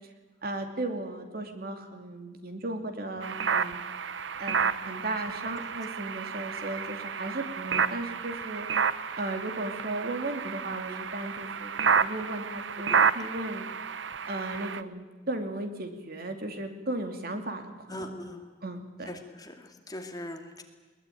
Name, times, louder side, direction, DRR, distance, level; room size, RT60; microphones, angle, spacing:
voice 1, 0.4-3.8 4.4-8.7 9.2-13.7 14.3-18.1 18.6-19.1, right 2 dB, 55° right, 6 dB, 2.7 m, -36 dB
sound 1, 3.2-14.8, right 6 dB, 75° right, 0.8 m, -30 dB
voice 2, 17.9-18.5 19.1-20.6, left 1 dB, 20° left, 4 dB, 2.4 m, -41 dB
21.5 x 21.0 x 9.3 m, 1.3 s
head